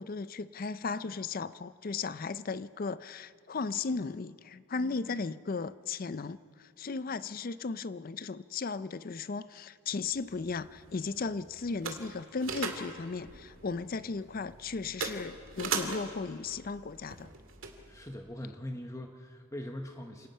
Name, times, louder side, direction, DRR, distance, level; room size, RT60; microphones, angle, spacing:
voice 1, 0.0-17.3, left 4 dB, 40° left, 0.4 m, -36 dB
sound 1, 10.1-18.1, right 5 dB, 65° right, 2.2 m, -41 dB
voice 2, 17.9-20.3, left 1 dB, 15° left, 1.0 m, -41 dB
28.0 x 18.5 x 5.5 m
head